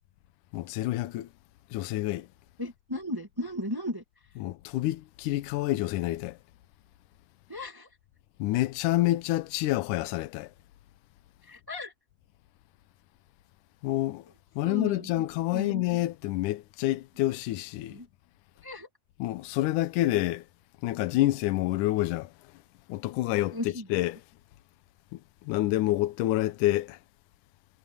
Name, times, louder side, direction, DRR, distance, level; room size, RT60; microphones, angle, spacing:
voice 1, 0.5-1.3 1.7-2.3 4.4-6.4 8.4-10.5 13.8-14.2 14.6-18.0 19.2-20.5 20.8-22.3 22.9-24.2 25.1-27.0, left 16 dB, 75° left, 2.2 m, -28 dB
voice 2, 2.6-4.0 7.5-7.9 11.4-11.9 14.6-15.1 15.5-15.8 17.9-18.1 18.6-18.9 23.5-23.9, left 1 dB, 25° right, 0.5 m, -35 dB
omnidirectional pair, 3.9 m